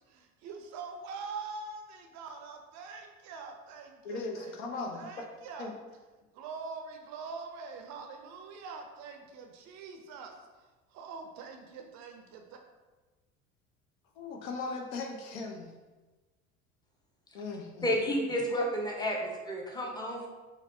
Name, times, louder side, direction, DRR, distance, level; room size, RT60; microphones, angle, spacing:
voice 1, 0.1-4.6 4.9-5.7 6.3-12.6, right 4 dB, 45° right, 4 dB, 0.5 m, -44 dB
voice 2, 4.0-5.1 5.6-5.7 14.2-15.7 17.3-17.9, left 3 dB, 65° left, 2 dB, 0.7 m, -38 dB
voice 3, 17.8-20.3, equal, 10° left, 0 dB, 0.6 m, -31 dB
4.0 x 2.0 x 2.6 m, 1.2 s
hypercardioid pair, 70°, 40 cm